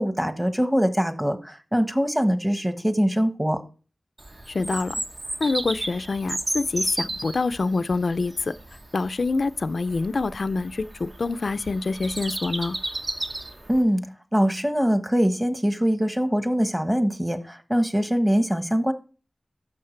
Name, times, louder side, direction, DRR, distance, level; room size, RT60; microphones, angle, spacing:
voice 1, 0.0-3.6 13.7-14.0 14.3-18.9, equal, 10° right, 1.2 m, -23 dB
Bird vocalization bird call bird song, 4.2-13.8, right 2 dB, 55° right, 1.1 m, -34 dB
voice 2, 4.5-5.0 5.4-8.5 8.9-12.8, left 3 dB, 85° left, 0.3 m, -26 dB
11.5 x 7.2 x 3.2 m
wide cardioid pair, 65°, 0 cm